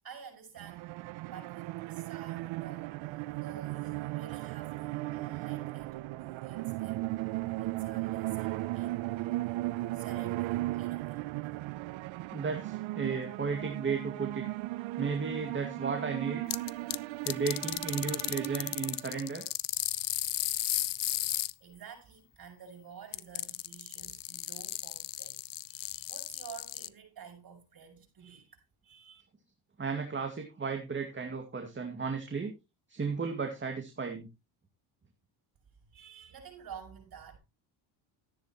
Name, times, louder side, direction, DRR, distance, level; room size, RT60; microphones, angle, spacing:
voice 1, 0.0-0.9 1.2-7.1 7.6-9.3 9.9-11.2 21.6-25.4 25.7-29.2 35.7-37.4, right 7 dB, 45° right, 6.7 m, -51 dB
sound 1, 0.6-19.3, right 19 dB, 70° right, 0.6 m, -36 dB
voice 2, 12.3-14.5 15.0-16.4 17.2-19.4 29.8-32.5 32.9-34.3, right 5 dB, 25° right, 2.2 m, -34 dB
sound 2, 16.5-17.0 17.3-21.5 23.1-26.9, left 14 dB, 45° left, 0.6 m, -34 dB
13.5 x 10.0 x 3.1 m
cardioid pair, 95°, 48 cm